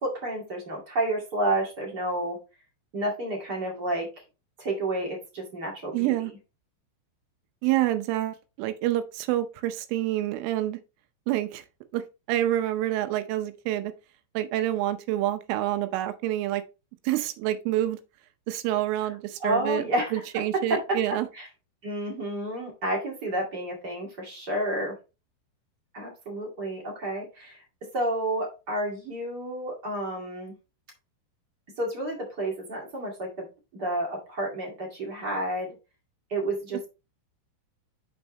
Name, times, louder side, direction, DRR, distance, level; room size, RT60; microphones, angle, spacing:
voice 1, 0.0-2.4 2.9-4.1 4.6-6.1 19.4-21.5 21.8-25.0 25.9-27.6 27.9-30.5 31.8-33.5 33.7-35.7 36.3-36.9, right 1 dB, 50° right, 1.2 m, -30 dB
voice 2, 5.9-6.3 7.6-10.8 11.3-11.6 11.9-12.0 12.3-13.9 14.3-16.6 17.1-18.0 18.5-19.8 20.1-21.3, right 14 dB, 80° right, 3.2 m, -27 dB
7.2 x 6.3 x 3.1 m
omnidirectional pair, 5.7 m